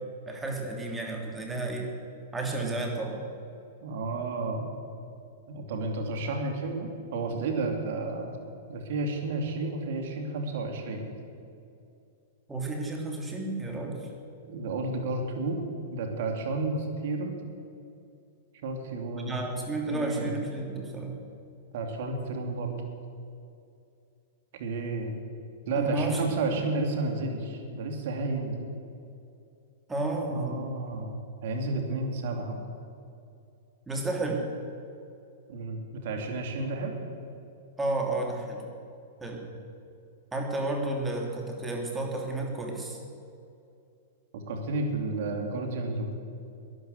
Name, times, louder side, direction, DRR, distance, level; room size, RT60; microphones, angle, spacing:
voice 1, 0.3-1.9 2.3-3.1 12.5-14.0 19.2-21.1 25.7-26.3 26.6-26.7 29.9-30.6 30.9-31.1 33.9-34.4 37.8-38.6 39.2-39.4 40.3-43.0, right 2 dB, 10° right, 1 dB, 3.0 m, -32 dB
voice 2, 3.8-4.7 5.5-8.4 8.7-11.1 14.4-15.6 15.9-17.3 18.6-19.5 19.9-20.3 21.7-22.7 24.5-25.1 25.7-28.7 30.3-32.6 35.5-36.9 44.3-46.1, right 3 dB, 60° right, 3 dB, 2.6 m, -31 dB
12.5 x 11.0 x 8.0 m, 2.6 s
hypercardioid pair, 130°, 0 cm